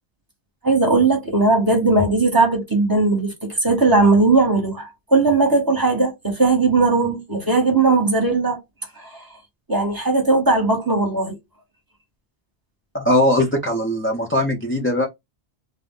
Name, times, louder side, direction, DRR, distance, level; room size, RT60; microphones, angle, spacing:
voice 1, 0.6-8.6 9.0-9.1 9.7-11.4, right 3 dB, 25° right, 0.9 m, -18 dB
voice 2, 12.9-15.1, left 1 dB, 20° left, 0.3 m, -20 dB
2.3 x 2.1 x 3.6 m
omnidirectional pair, 1.0 m